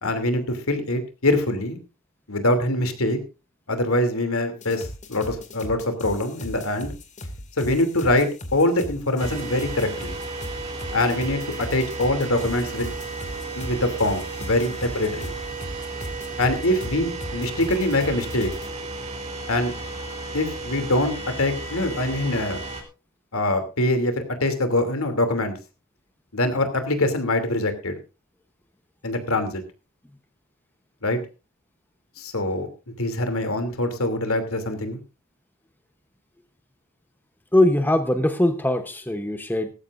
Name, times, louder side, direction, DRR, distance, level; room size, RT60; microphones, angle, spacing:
voice 1, 0.0-1.8 2.3-3.2 3.7-6.9 7.6-10.2 10.9-12.9 13.5-15.3 16.4-18.5 19.5-19.7 20.3-22.6 23.3-25.6 26.3-28.0 29.0-29.6 31.0-31.2 32.2-35.0, left 1 dB, 70° left, 8 dB, 2.9 m, -24 dB
sound 1, 4.6-18.7, left 1 dB, 35° left, 2.3 m, -38 dB
sound 2, 9.2-22.8, right 3 dB, 30° right, 3.4 m, -34 dB
voice 2, 37.5-39.7, left 1 dB, 10° left, 8 dB, 0.9 m, -21 dB
18.0 x 15.0 x 2.6 m, 0.30 s
head